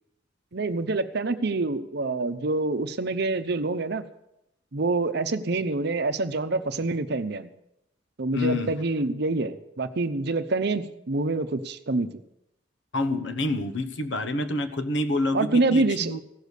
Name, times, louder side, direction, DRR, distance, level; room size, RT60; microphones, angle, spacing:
voice 1, 0.5-4.0 4.7-7.5 8.2-12.2 15.3-16.1, right 3 dB, 60° right, 10 dB, 0.8 m, -26 dB
voice 2, 8.3-8.8 12.9-16.2, left 2 dB, 65° left, 9 dB, 1.0 m, -27 dB
16.0 x 6.8 x 8.2 m, 0.86 s
head